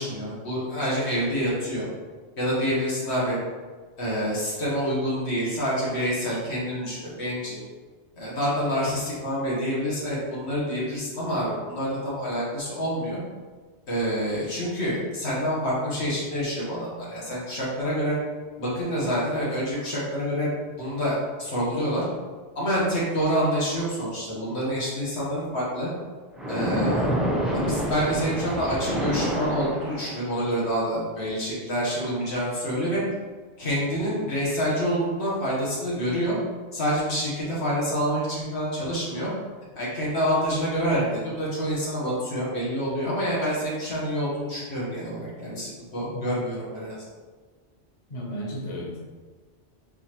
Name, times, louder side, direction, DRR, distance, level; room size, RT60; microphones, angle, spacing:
voice 1, 0.0-1.9 2.4-3.4 4.0-7.6 8.2-13.2 13.9-18.2 18.6-20.5 20.8-22.0 22.5-25.9 26.5-27.1 27.5-33.0 33.6-36.3 36.7-39.3 39.7-47.0, equal, 70° left, -7 dB, 1.6 m, -27 dB
Splash splatter, 26.4-30.4, equal, ahead, 0.5 m, -27 dB
voice 2, 48.1-49.0, equal, 35° left, -3 dB, 0.8 m, -34 dB
4.2 x 3.9 x 3.0 m, 1.4 s
omnidirectional pair, 1.2 m